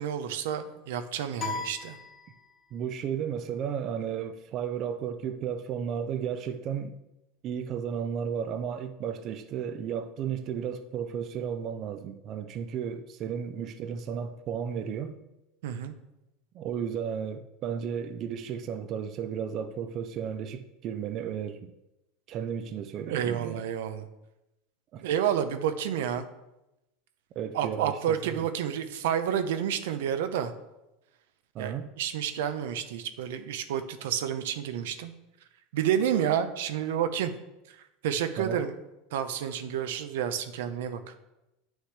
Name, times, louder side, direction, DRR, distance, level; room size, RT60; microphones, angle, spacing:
voice 1, 0.0-2.0 15.6-15.9 23.1-24.0 25.0-26.2 27.5-30.5 31.6-35.1 35.7-37.3 37.7-37.8 38.0-38.7 39.1-41.1, right 9 dB, 85° right, 0.7 m, -30 dB
sound 1, 1.4-2.8, left 5 dB, 20° left, 1.4 m, -37 dB
voice 2, 2.7-6.9 7.4-15.1 16.5-21.7 22.3-23.6 24.9-25.0 27.4-28.0 28.2-28.4 31.5-31.9 38.4-38.6, right 8 dB, 40° right, 0.5 m, -33 dB
9.7 x 6.3 x 3.3 m
supercardioid pair, 145°, 0 cm